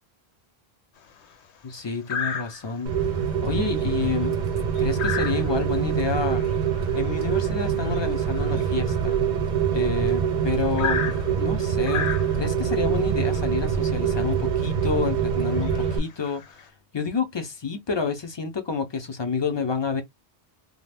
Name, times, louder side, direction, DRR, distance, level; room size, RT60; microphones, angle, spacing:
sound 1, 1.0-1.3 2.1-2.9 3.3-3.5 3.8-10.1 10.8-12.7 13.6-13.8 14.2-14.3 14.8-15.1 15.5-16.7, left 6 dB, 90° left, 0.9 m, -34 dB
voice 1, 1.6-2.9 3.4-4.3 4.8-6.4 6.9-9.2 9.7-12.1 12.4-20.0, left 5 dB, 35° left, 0.4 m, -29 dB
Rain, 2.9-16.0, right 7 dB, 55° right, 0.6 m, -25 dB
2.4 x 2.1 x 3.3 m
omnidirectional pair, 1.1 m